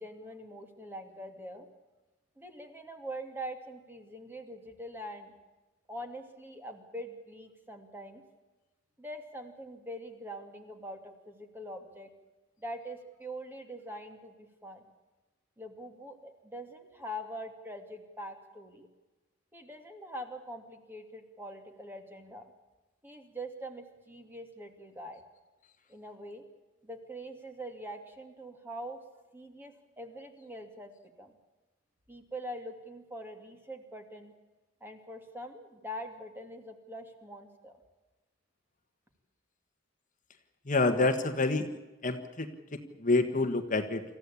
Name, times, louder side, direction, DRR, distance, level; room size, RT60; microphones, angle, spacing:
voice 1, 0.0-1.7 2.4-5.3 5.9-8.2 9.0-12.1 12.6-14.8 15.6-18.9 19.5-22.5 23.0-25.2 25.9-26.4 26.8-29.0 29.3-30.9 31.2-31.3 32.1-34.3 34.8-37.8, equal, 10° right, 5 dB, 2.6 m, -43 dB
voice 2, 40.7-41.7 42.0-44.0, left 3 dB, 40° left, 7 dB, 1.5 m, -28 dB
26.5 x 15.0 x 8.6 m, 1.1 s
head